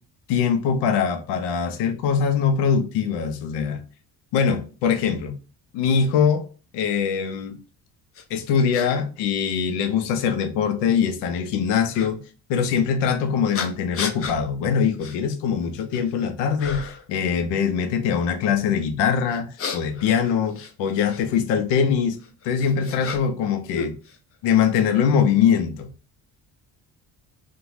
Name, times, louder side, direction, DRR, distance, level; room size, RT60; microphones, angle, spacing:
voice 1, 0.3-3.8 4.3-5.3 5.7-6.5 6.7-7.6 8.3-12.2 12.5-22.2 22.4-23.9 24.4-25.9, left 7 dB, 90° left, 0.5 m, -22 dB
sound 1, 8.1-8.2 8.7-8.9 9.8-9.9 11.9-12.1 13.5-14.4 15.0-15.2 15.6-16.1 16.6-17.1 19.3-21.2 22.2-23.5 23.7-24.6, left 6 dB, 35° left, 0.4 m, -33 dB
2.5 x 2.1 x 3.1 m
cardioid pair, 105°, 40 cm